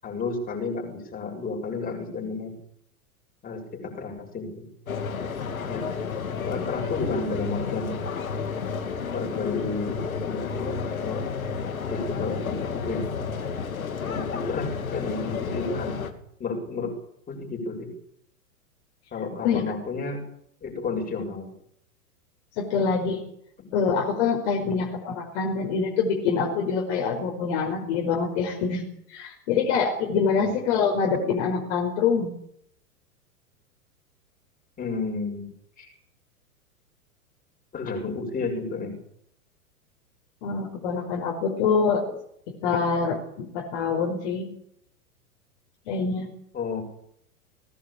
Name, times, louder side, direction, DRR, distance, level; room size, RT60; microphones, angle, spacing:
voice 1, 0.0-2.6 3.4-4.7 5.6-6.1 6.4-8.0 9.1-11.3 11.9-13.3 14.0-17.0 17.3-17.9 19.1-20.2 20.6-21.5 23.6-23.7 24.6-24.8 25.4-25.5 30.3-30.5 34.8-35.5 35.8-35.9 37.7-39.0 46.5-46.8, left 4 dB, 20° left, 2 dB, 7.4 m, -32 dB
sound 1, 4.9-16.1, left 5 dB, 65° left, 2.9 m, -31 dB
voice 2, 22.6-23.2 23.7-28.8 29.1-32.3 40.4-42.0 42.5-44.5 45.9-46.3, left 5 dB, 45° left, 1 dB, 5.2 m, -25 dB
20.5 x 18.0 x 8.7 m, 0.71 s
figure-of-eight pair, 100°, 45 cm